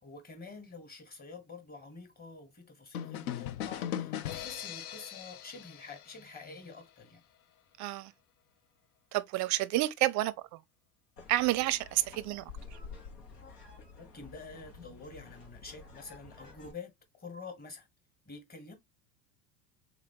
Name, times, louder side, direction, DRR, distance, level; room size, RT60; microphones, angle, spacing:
voice 1, 0.0-7.2 14.0-17.9 18.3-18.8, left 4 dB, 20° left, 1.3 m, -48 dB
sound 1, 2.9-6.7, left 10 dB, 70° left, 0.6 m, -39 dB
voice 2, 7.8-8.1 9.1-10.6 11.3-12.4, right 16 dB, 40° right, 0.5 m, -30 dB
sound 2, 11.2-16.7, left 4 dB, 85° left, 1.2 m, -50 dB
3.8 x 3.0 x 2.7 m
hypercardioid pair, 75°, 47 cm